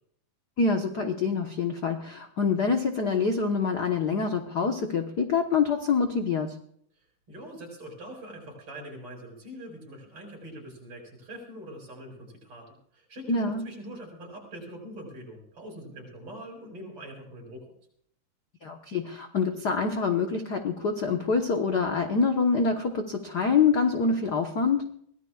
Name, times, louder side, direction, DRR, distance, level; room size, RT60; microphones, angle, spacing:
voice 1, 0.6-6.5 13.3-13.6 18.6-24.8, left 5 dB, 80° left, 4 dB, 0.9 m, -26 dB
voice 2, 7.3-12.7 12.9-17.6, right 1 dB, 40° right, 1 dB, 6.3 m, -43 dB
24.0 x 17.5 x 2.4 m, 0.64 s
omnidirectional pair, 3.8 m